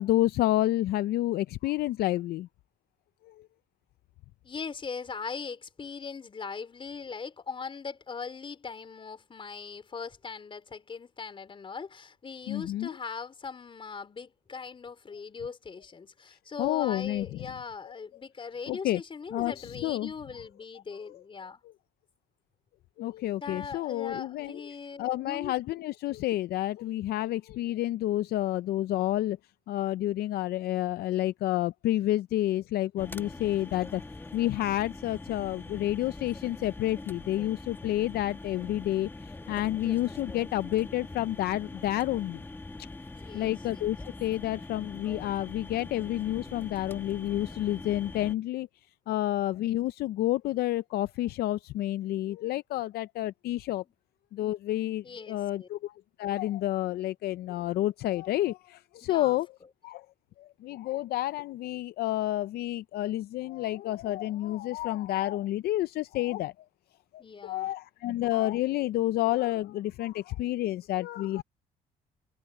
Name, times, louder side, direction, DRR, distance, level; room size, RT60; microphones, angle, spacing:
voice 1, 0.0-2.5 12.5-12.9 16.6-17.3 18.7-19.0 19.3-20.1 23.0-24.6 25.0-29.4 29.7-34.0 34.3-39.1 39.5-42.4 43.3-48.7 49.1-53.8 54.3-55.9 56.2-59.5 59.8-60.0 60.6-66.5 67.1-71.4, left 14 dB, 65° left, 0.5 m, -29 dB
voice 2, 4.4-21.6 23.4-25.5 43.1-43.8 53.8-53.9 55.0-55.7 59.0-59.4 67.2-67.7, left 5 dB, 30° left, 4.3 m, -40 dB
sound 1, 33.0-48.3, left 2 dB, 10° left, 1.6 m, -43 dB
cardioid pair, 110°, 17 cm